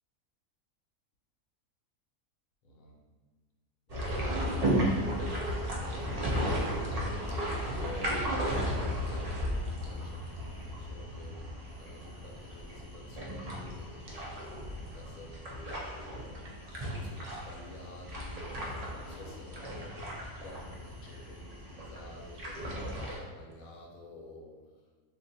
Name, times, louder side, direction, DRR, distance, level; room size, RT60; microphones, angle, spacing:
voice 1, 2.6-3.0 3.9-5.2 5.8-6.5 7.3-24.7, left 2 dB, 75° left, 0 dB, 1.0 m, -50 dB
sound 1, 3.9-23.2, equal, 55° right, 0.4 m, -35 dB
2.5 x 2.5 x 3.8 m, 1.4 s
omnidirectional pair, 1.5 m